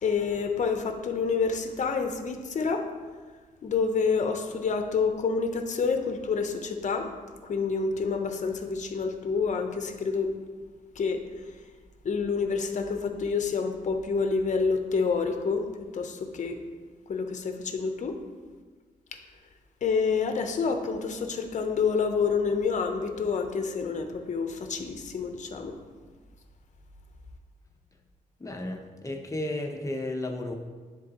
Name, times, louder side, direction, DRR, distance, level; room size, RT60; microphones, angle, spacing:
voice 1, 0.0-2.9 3.6-7.1 7.4-10.3 11.0-11.2 12.0-15.7 15.9-16.6 17.1-18.2 19.8-25.7, left 5 dB, 55° left, 5 dB, 0.8 m, -28 dB
voice 2, 28.4-30.5, left 1 dB, 20° left, 2 dB, 0.8 m, -33 dB
10.0 x 4.0 x 2.9 m, 1.4 s
cardioid pair, 90°, 15 cm